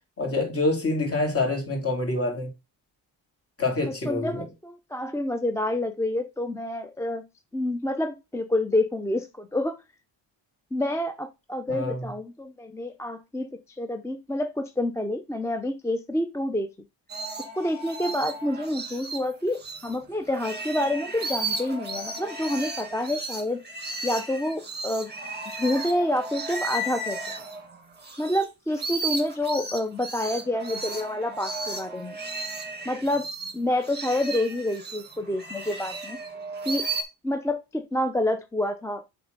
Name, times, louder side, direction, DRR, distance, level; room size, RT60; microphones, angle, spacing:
voice 1, 0.2-2.5 3.6-4.4 11.7-12.1, left 2 dB, 30° left, 2.9 m, -26 dB
voice 2, 3.9-7.2 7.5-9.8 10.7-13.5 13.8-16.7 17.5-23.6 24.0-25.1 25.5-27.2 28.2-32.2 32.9-33.3 33.5-36.2 36.7-36.8 37.2-39.0, left 1 dB, 5° left, 0.4 m, -28 dB
sound 1, 17.1-20.0 20.3-28.5 28.7-37.0, right 2 dB, 25° right, 1.5 m, -34 dB
7.1 x 3.5 x 5.2 m
cardioid pair, 120°, 44 cm